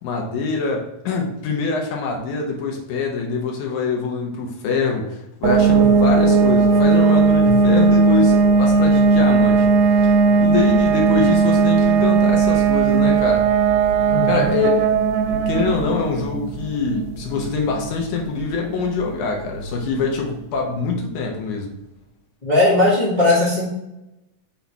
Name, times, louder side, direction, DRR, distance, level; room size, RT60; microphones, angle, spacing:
voice 1, 0.0-9.7 10.0-10.1 10.4-13.4 14.2-14.9 15.3-21.7, left 4 dB, 90° left, 1 dB, 2.4 m, -24 dB
sound 1, 5.4-20.0, right 4 dB, 80° right, 1.9 m, -17 dB
voice 2, 14.1-14.5 22.4-23.7, left 2 dB, 20° left, -7 dB, 1.4 m, -18 dB
5.5 x 4.1 x 4.6 m, 0.92 s
omnidirectional pair, 3.3 m